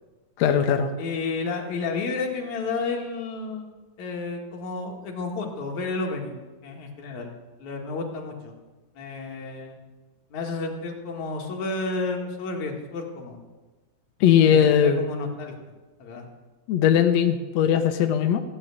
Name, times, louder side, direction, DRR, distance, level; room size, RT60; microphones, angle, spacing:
voice 1, 0.4-0.9 14.2-15.0 16.7-18.4, left 9 dB, 80° left, 6 dB, 1.5 m, -19 dB
voice 2, 1.0-6.4 6.6-7.3 7.6-8.5 9.0-9.8 10.3-13.4 14.5-15.5 16.0-16.2, left 3 dB, 55° left, 1 dB, 2.9 m, -31 dB
16.0 x 8.5 x 8.4 m, 1.2 s
omnidirectional pair, 4.3 m